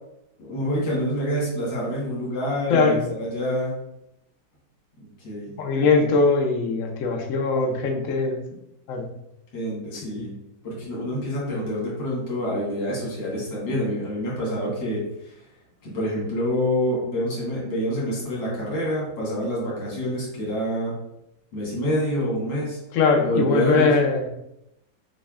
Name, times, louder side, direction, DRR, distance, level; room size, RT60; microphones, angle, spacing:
voice 1, 0.4-3.7 5.2-5.5 9.5-10.3 10.6-15.3 15.8-20.9 21.5-22.8 23.2-24.0, equal, 80° left, -5 dB, 2.1 m, -27 dB
voice 2, 2.7-3.0 5.6-8.4 8.9-9.1 9.9-10.2 22.9-24.2, left 4 dB, 65° left, 3 dB, 0.8 m, -21 dB
6.2 x 2.2 x 2.3 m, 0.84 s
omnidirectional pair, 1.9 m